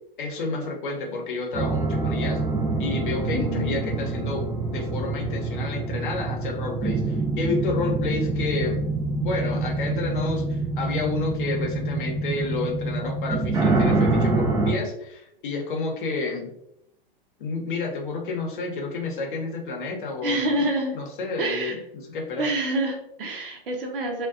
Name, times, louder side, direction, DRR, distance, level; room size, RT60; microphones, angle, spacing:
voice 1, 0.2-2.4 2.8-8.8 9.2-16.5 17.4-20.7 20.9-22.5, left 3 dB, 60° left, 1 dB, 0.7 m, -30 dB
sound 1, 1.5-14.7, right 3 dB, 15° right, 0.4 m, -26 dB
voice 2, 3.3-3.8 20.2-21.0 21.4-21.8 22.4-24.3, right 1 dB, 65° right, 1 dB, 0.7 m, -27 dB
2.3 x 2.2 x 2.3 m, 0.77 s
figure-of-eight pair, 100°, 29 cm